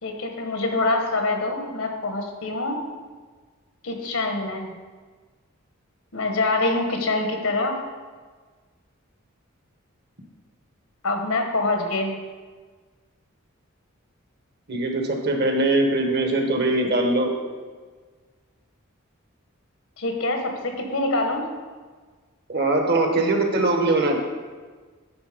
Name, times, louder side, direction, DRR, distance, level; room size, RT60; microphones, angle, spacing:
voice 1, 0.0-2.8 3.8-4.7 6.1-7.8 11.0-12.2 20.0-21.4, left 2 dB, 75° left, 3 dB, 1.3 m, -25 dB
voice 2, 14.7-17.3 22.5-24.2, right 2 dB, 50° right, 3 dB, 1.2 m, -21 dB
10.5 x 4.4 x 5.1 m, 1.4 s
head